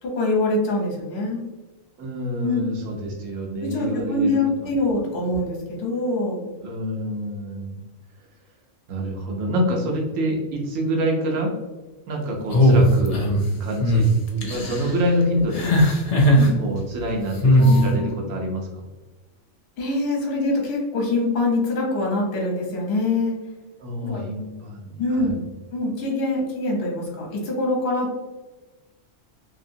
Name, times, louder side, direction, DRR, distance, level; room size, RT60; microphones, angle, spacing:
voice 1, 0.0-1.4 2.4-2.6 3.6-6.5 16.3-16.6 17.6-18.1 19.8-23.4 24.0-24.2 25.0-25.4 25.7-28.2, left 2 dB, 55° left, -1 dB, 1.1 m, -24 dB
voice 2, 2.0-4.4 6.6-7.8 8.9-11.5 12.1-13.2 13.6-15.7 16.6-18.8 23.8-25.4, equal, 80° right, 0 dB, 1.1 m, -27 dB
sound 1, 12.5-13.4 13.8-14.1 14.4-14.9 15.5-16.5 17.4-17.8, equal, 70° left, 0.3 m, -17 dB
2.9 x 2.8 x 2.6 m, 1.2 s
omnidirectional pair, 1.4 m